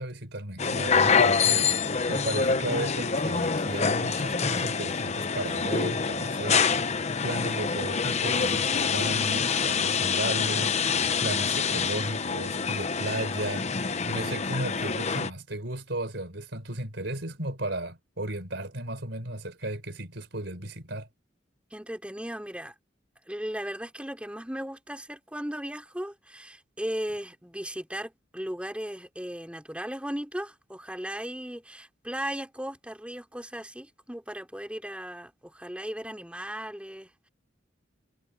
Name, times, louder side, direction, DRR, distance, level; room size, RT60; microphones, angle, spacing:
voice 1, 0.0-1.7 2.1-6.9 7.2-21.1, right 1 dB, 70° right, 5.0 m, -34 dB
sound 1, 0.6-15.3, left 5 dB, 40° left, 0.8 m, -26 dB
voice 2, 21.7-22.7 23.3-37.3, equal, 5° right, 3.9 m, -36 dB
head